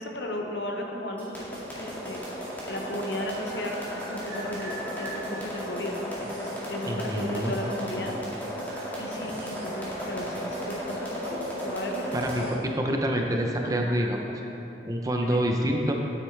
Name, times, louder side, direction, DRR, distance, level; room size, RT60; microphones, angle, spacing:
voice 1, 0.0-2.2 2.7-4.7 5.0-8.2 9.0-11.4 11.6-12.6 13.6-14.0 15.2-15.4, left 1 dB, 70° left, 1 dB, 1.0 m, -35 dB
sound 1, 1.2-12.4, equal, 10° left, 2.0 m, -35 dB
sound 2, 3.2-5.3 6.1-6.6 7.8-7.9 8.5-9.9 10.2-10.3 11.1-11.2 11.5-12.6 12.9-13.1 13.7-14.2, right 2 dB, 75° right, 1.8 m, -44 dB
voice 2, 6.9-7.5 12.1-12.4 12.8-14.2 14.9-15.9, equal, 20° right, 1 dB, 0.6 m, -26 dB
sound 3, 9.3-13.4, left 1 dB, 40° left, 0.7 m, -48 dB
9.5 x 8.7 x 3.3 m, 2.8 s
head